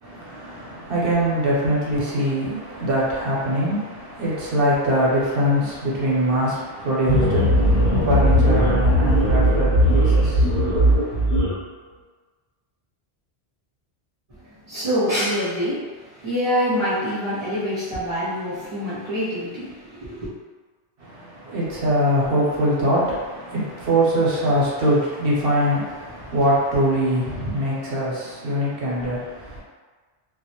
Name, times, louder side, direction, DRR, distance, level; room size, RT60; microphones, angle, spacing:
voice 1, 0.0-11.3 21.0-29.6, equal, 60° right, -6 dB, 0.9 m, -23 dB
sound 1, 7.1-11.5, equal, 60° left, 0.8 m, -18 dB
voice 2, 14.4-20.3, equal, 30° right, -12 dB, 0.7 m, -25 dB
2.2 x 2.0 x 2.8 m, 1.4 s
omnidirectional pair, 1.1 m